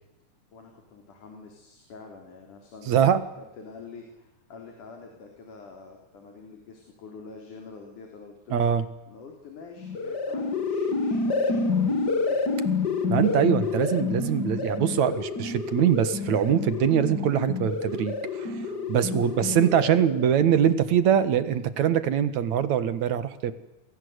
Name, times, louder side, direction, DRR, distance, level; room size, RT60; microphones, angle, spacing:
voice 1, 0.5-3.1 3.4-8.7 9.1-12.9 18.6-19.0, left 4 dB, 85° left, 3 dB, 5.2 m, -46 dB
voice 2, 2.9-3.2 8.5-8.8 13.1-18.6 18.9-23.5, right 9 dB, 70° right, 13 dB, 2.8 m, -23 dB
sound 1, 9.8-20.3, left 4 dB, 35° left, 2.4 m, -28 dB
28.5 x 22.0 x 8.2 m, 0.94 s
omnidirectional pair, 3.5 m